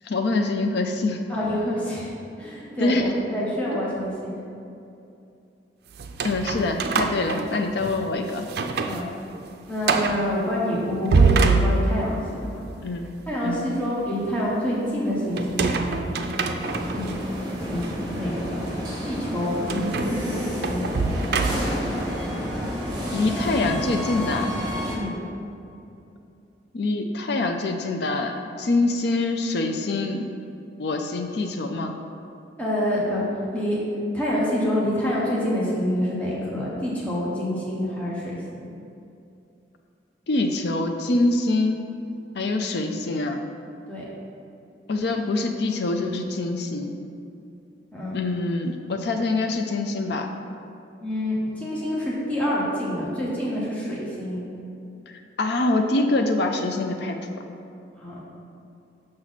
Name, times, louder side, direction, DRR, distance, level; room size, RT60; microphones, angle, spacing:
voice 1, 0.0-1.2 2.8-3.1 6.2-8.5 12.8-13.1 13.5-13.7 23.1-24.5 26.7-28.3 28.6-30.3 30.8-32.0 40.3-41.9 42.3-43.4 44.9-47.0 48.1-50.3 55.4-57.2, left 2 dB, 65° left, 4 dB, 0.5 m, -25 dB
voice 2, 1.3-4.3 8.8-9.1 9.7-12.2 12.5-12.6 13.3-16.5 16.9-17.2 17.6-17.9 18.1-18.6 19.0-20.8 24.9-25.2 32.6-33.8 34.1-38.7 43.9-44.0 47.9-48.2 51.0-54.4 57.9-58.2, equal, 10° left, -7 dB, 1.2 m, -27 dB
sound 1, 6.0-8.0 8.4-9.0 9.3-9.4 9.8-10.2 10.9-12.2 15.4-17.1 17.8-17.9 19.7-21.9, right 3 dB, 60° right, 0.4 m, -24 dB
Int subway station, 16.6-24.9, equal, 25° right, 1.5 m, -30 dB
6.3 x 5.9 x 4.1 m, 2.7 s
head